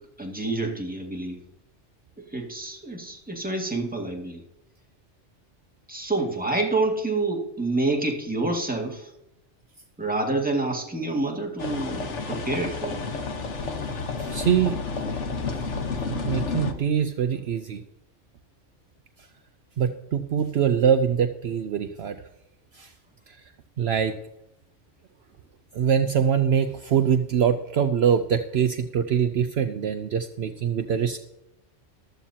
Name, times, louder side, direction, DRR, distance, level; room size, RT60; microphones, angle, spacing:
voice 1, 0.2-1.4 2.3-4.4 5.9-9.1 10.0-13.1, right 2 dB, 5° right, 1 dB, 2.0 m, -28 dB
sound 1, 11.6-16.7, left 4 dB, 70° left, 1.5 m, -30 dB
voice 2, 14.2-14.8 15.5-15.6 16.3-17.8 19.8-22.3 22.7-22.9 23.3-23.4 23.8-24.1 25.7-31.2, right 8 dB, 65° right, 8 dB, 0.9 m, -23 dB
15.0 x 13.0 x 2.8 m, 0.86 s
omnidirectional pair, 1.2 m